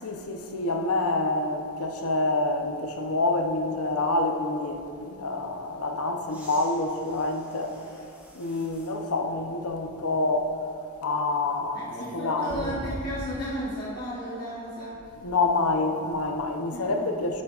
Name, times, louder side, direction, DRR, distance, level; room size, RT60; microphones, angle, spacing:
voice 1, 0.0-7.8 8.3-10.6 11.0-12.8 15.2-17.4, left 2 dB, 75° left, 4 dB, 0.8 m, -27 dB
sound 1, 6.2-9.0 9.7-9.8 12.5-13.7 15.5-15.6, equal, 5° right, 1.3 m, -42 dB
voice 2, 11.7-15.0 16.7-17.0, equal, 45° left, -8 dB, 1.2 m, -34 dB
10.5 x 10.5 x 2.4 m, 2.5 s
head